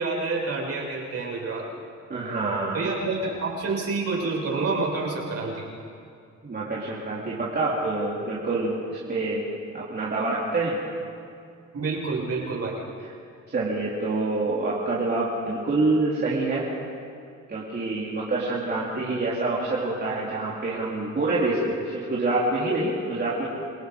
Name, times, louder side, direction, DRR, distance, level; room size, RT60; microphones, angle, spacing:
voice 1, 0.0-1.9 2.7-5.7 11.7-12.8, right 3 dB, 55° right, -3 dB, 6.5 m, -28 dB
voice 2, 2.1-2.9 6.4-10.8 13.5-16.7 17.5-23.5, right 2 dB, 35° right, -7 dB, 3.7 m, -26 dB
28.0 x 18.0 x 5.4 m, 2.4 s
cardioid pair, 90°, 30 cm